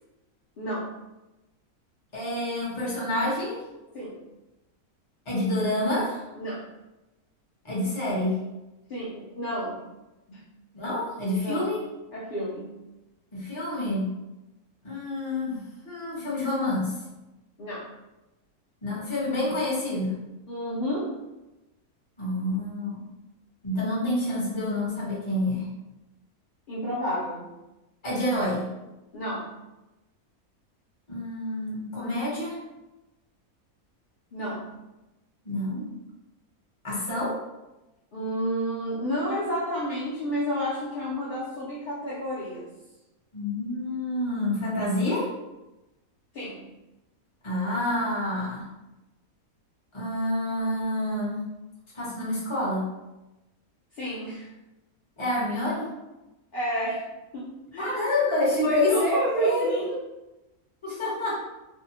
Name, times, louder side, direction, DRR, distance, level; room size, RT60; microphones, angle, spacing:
voice 1, 0.6-0.9 3.9-4.1 6.4-6.7 8.9-9.8 10.3-10.4 11.4-11.7 12.1-12.7 17.6-17.9 20.5-21.2 26.7-27.5 29.1-29.5 34.3-34.7 38.1-42.7 46.3-46.7 53.9-54.5 56.5-57.0 57.3-58.0 58.6-60.0, equal, 65° left, -9 dB, 0.5 m, -30 dB
voice 2, 2.1-3.6 5.3-6.3 7.6-8.4 10.7-11.8 13.3-14.1 14.8-16.9 18.8-20.2 22.2-23.1 23.6-25.7 28.0-28.7 31.1-32.6 35.4-35.9 36.8-37.4 43.3-45.3 47.4-48.7 49.9-51.4 51.9-52.9 55.2-55.9 57.8-59.8 60.8-61.3, left 1 dB, 25° left, -7 dB, 0.7 m, -28 dB
2.6 x 2.1 x 2.8 m, 1.0 s
omnidirectional pair, 1.5 m